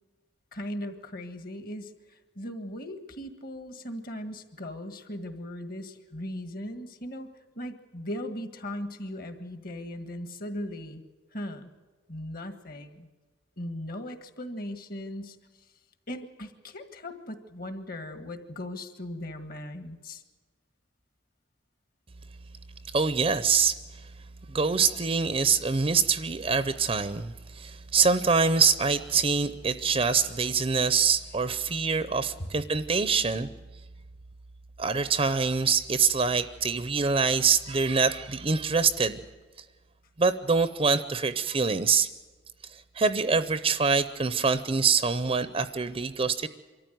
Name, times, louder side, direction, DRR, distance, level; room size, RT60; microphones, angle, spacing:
voice 1, 0.5-7.3 7.5-11.0 11.3-11.7 12.1-13.1 13.6-15.4 16.1-20.2 32.4-32.5, left 1 dB, 50° left, 9 dB, 1.6 m, -38 dB
voice 2, 22.9-23.8 24.5-33.5 34.8-39.2 40.2-42.1 42.7-46.5, right 5 dB, 30° right, 13 dB, 0.6 m, -25 dB
24.0 x 14.0 x 9.2 m, 1.3 s
head